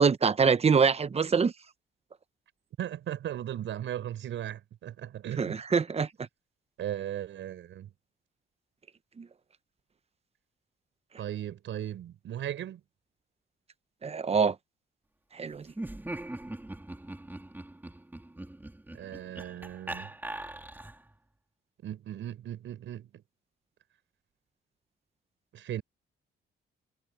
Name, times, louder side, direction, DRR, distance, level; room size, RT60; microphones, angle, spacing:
voice 1, 0.0-1.5 5.4-6.1 9.2-9.3 14.0-14.6 15.3-15.7, right 5 dB, 30° right, 1.0 m, -24 dB
voice 2, 2.8-5.6 6.8-7.9 11.2-12.8 18.9-20.1 21.8-23.2 25.5-25.8, right 11 dB, 75° right, 6.0 m, -37 dB
Laughter, 15.7-21.1, right 1 dB, 10° right, 3.6 m, -41 dB
cardioid pair, 90°, 20 cm